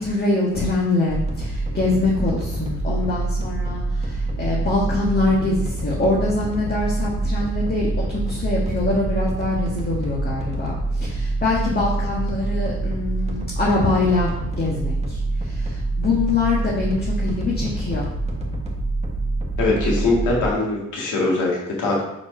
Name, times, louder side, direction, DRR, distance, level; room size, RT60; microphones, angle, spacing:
voice 1, 0.0-18.1, left 2 dB, 30° left, -5 dB, 1.5 m, -24 dB
sound 1, 1.1-20.5, right 2 dB, 20° right, 1.4 m, -26 dB
voice 2, 19.6-22.0, left 2 dB, 80° left, -3 dB, 1.9 m, -21 dB
4.9 x 4.7 x 5.4 m, 0.86 s
cardioid pair, 90°, 30 cm